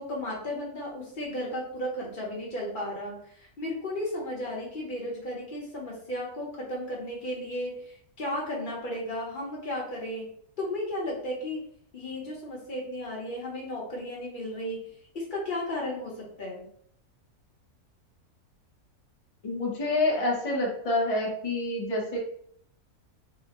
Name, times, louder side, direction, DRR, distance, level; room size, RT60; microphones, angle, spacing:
voice 1, 0.0-10.3 10.6-11.6 11.9-16.7, left 1 dB, 40° left, -3 dB, 0.9 m, -34 dB
voice 2, 19.4-22.2, left 2 dB, 60° left, -1 dB, 0.3 m, -27 dB
4.0 x 2.2 x 2.9 m, 0.66 s
omnidirectional pair, 1.6 m